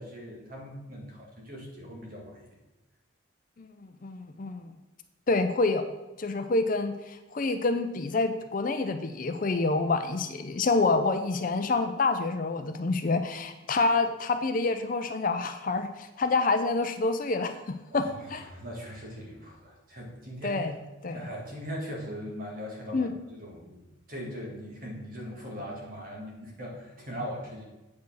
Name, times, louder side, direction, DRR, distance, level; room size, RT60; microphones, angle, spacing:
voice 1, 0.0-2.5 17.9-20.6 21.1-27.6, equal, 45° right, -1 dB, 2.0 m, -40 dB
voice 2, 3.6-4.7 5.3-5.9 6.2-18.0 18.3-18.4 20.4-20.7 21.0-21.2 22.9-23.1, left 3 dB, 40° left, 8 dB, 0.5 m, -27 dB
8.2 x 4.9 x 6.3 m, 1.0 s
head